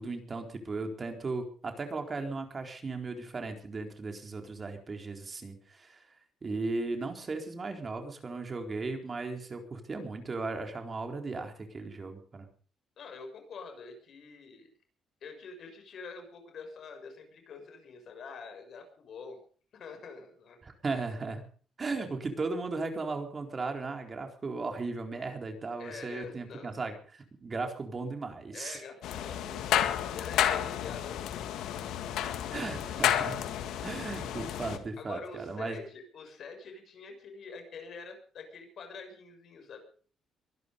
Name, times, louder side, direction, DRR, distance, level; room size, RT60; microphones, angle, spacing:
voice 1, 0.0-6.0 6.4-12.5 20.6-21.4 21.8-28.8 32.5-33.4 33.8-35.8, right 3 dB, 35° right, 4 dB, 4.1 m, -36 dB
voice 2, 13.0-14.7 15.2-19.4 19.7-20.6 25.8-26.8 28.5-29.7 30.0-31.4 32.4-32.7 35.0-39.8, left 4 dB, 60° left, 6 dB, 6.6 m, -46 dB
sound 1, 29.0-34.8, left 11 dB, 85° left, 2.0 m, -31 dB
23.5 x 11.0 x 5.3 m, 0.43 s
cardioid pair, 90°, 0 cm